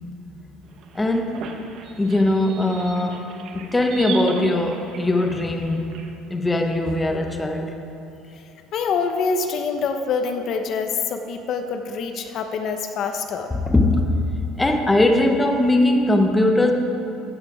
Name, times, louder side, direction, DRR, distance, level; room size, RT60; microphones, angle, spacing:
sound 1, 0.6-6.1, right 5 dB, 50° right, 1.1 m, -38 dB
voice 1, 0.9-1.5 2.0-3.3 3.5-5.9 6.3-7.8 13.5-14.2 14.6-16.7, left 1 dB, 10° left, 3 dB, 0.8 m, -20 dB
voice 2, 8.7-13.5, left 5 dB, 45° left, 6 dB, 0.8 m, -25 dB
14.5 x 8.3 x 4.9 m, 2.9 s
cardioid pair, 150°, 0 cm